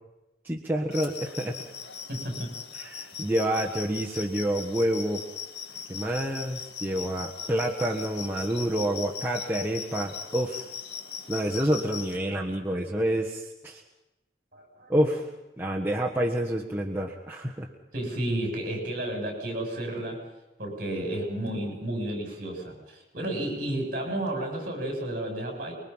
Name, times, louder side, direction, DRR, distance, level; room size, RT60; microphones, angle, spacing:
voice 1, 0.4-1.6 2.7-5.2 5.9-10.7 11.3-13.8 14.9-15.3 15.6-17.7, right 1 dB, 10° right, -2 dB, 1.3 m, -28 dB
sound 1, 0.9-12.2, left 7 dB, 70° left, 1.7 m, -39 dB
voice 2, 2.1-2.5 14.5-14.9 17.9-20.2 20.6-25.7, right 1 dB, 50° right, 1 dB, 7.3 m, -32 dB
25.0 x 22.5 x 5.6 m, 1.0 s
head